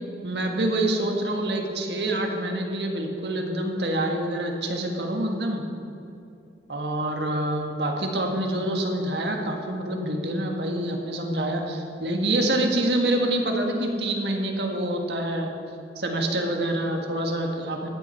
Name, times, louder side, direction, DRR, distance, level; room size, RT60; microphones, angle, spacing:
voice 1, 0.2-5.6 6.7-15.5 15.9-17.9, right 1 dB, 75° right, 2 dB, 1.6 m, -26 dB
15.0 x 10.5 x 4.5 m, 2.6 s
head